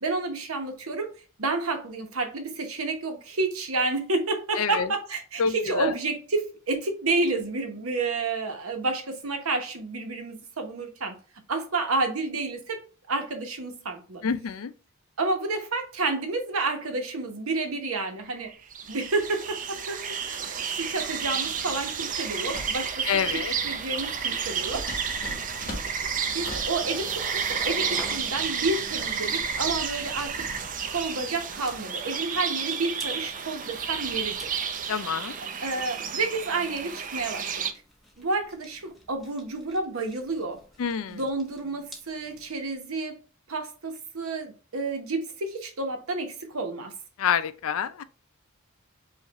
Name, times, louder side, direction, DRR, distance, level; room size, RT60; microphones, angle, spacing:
voice 1, 0.0-1.1 1.4-11.2 11.5-14.2 15.2-18.5 18.9-24.9 26.1-30.5 30.8-34.6 35.6-37.7 38.2-40.6 41.1-43.2 43.5-46.9, right 3 dB, 85° right, 1.0 m, -30 dB
voice 2, 4.6-4.9 5.4-5.9 14.2-14.7 23.1-23.5 34.9-35.4 40.8-41.2 47.2-48.0, left 7 dB, 75° left, 0.4 m, -27 dB
sound 1, 18.2-37.7, right 6 dB, 40° right, 0.5 m, -31 dB
sound 2, 22.5-22.8 24.7-26.8, left 1 dB, 45° left, 1.4 m, -38 dB
sound 3, 26.7-42.7, left 1 dB, ahead, 1.0 m, -49 dB
5.2 x 2.5 x 2.9 m
head